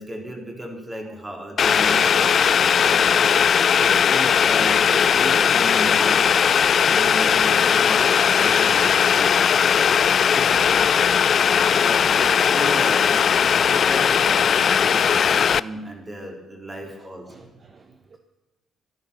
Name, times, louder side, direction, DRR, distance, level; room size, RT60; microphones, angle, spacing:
voice 1, 0.0-3.5 3.7-6.3 6.7-9.4 10.2-10.9 11.4-17.5, right 1 dB, 20° right, 2 dB, 3.9 m, -34 dB
Boiling, 1.6-15.6, left 7 dB, 55° left, 0.4 m, -18 dB
voice 2, 8.3-9.1 16.8-18.2, right 4 dB, 40° right, 7 dB, 1.1 m, -48 dB
13.5 x 11.5 x 7.0 m, 1.0 s
cardioid pair, 90°, 0 cm